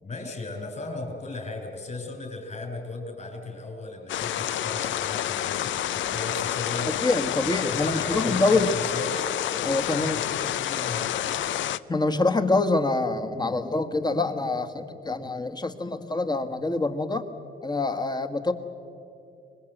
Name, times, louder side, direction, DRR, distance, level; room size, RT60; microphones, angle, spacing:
voice 1, 0.0-6.9 7.4-9.3 9.9-11.5, left 2 dB, 35° left, 3 dB, 5.6 m, -37 dB
sound 1, 4.1-11.8, left 12 dB, 70° left, 0.6 m, -29 dB
voice 2, 7.0-8.7 9.6-10.2 11.9-17.2 17.6-18.5, left 3 dB, 20° left, 7 dB, 1.6 m, -25 dB
24.5 x 20.5 x 8.0 m, 2.6 s
cardioid pair, 90°, 20 cm